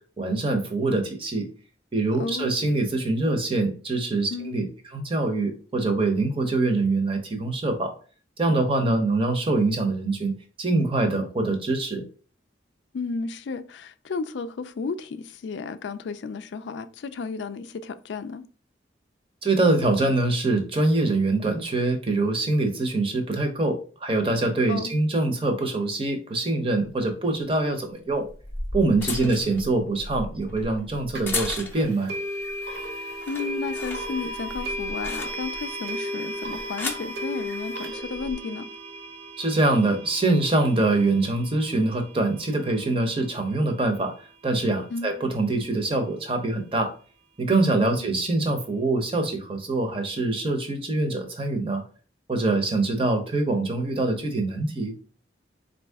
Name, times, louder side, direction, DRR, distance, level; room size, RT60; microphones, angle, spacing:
voice 1, 0.2-1.5 1.9-4.7 4.9-7.9 8.4-10.3 10.6-12.0 19.4-28.3 28.7-32.1 39.4-44.1 44.4-46.9 47.4-51.8 52.3-54.9, right 2 dB, 30° right, 0.7 m, -24 dB
voice 2, 2.2-2.5 4.3-4.6 12.9-18.4 24.7-24.9 29.0-29.3 33.3-38.6 44.9-45.1 47.8-48.1, left 4 dB, 70° left, 0.3 m, -33 dB
sound 1, 26.8-26.9 28.1-32.0 32.5-32.8 33.1-35.7 36.4-37.1 38.0-38.3, left 2 dB, 10° left, 0.5 m, -35 dB
sound 2, 31.1-31.2 32.1-43.1, equal, 55° right, 0.9 m, -35 dB
4.1 x 2.7 x 3.4 m
head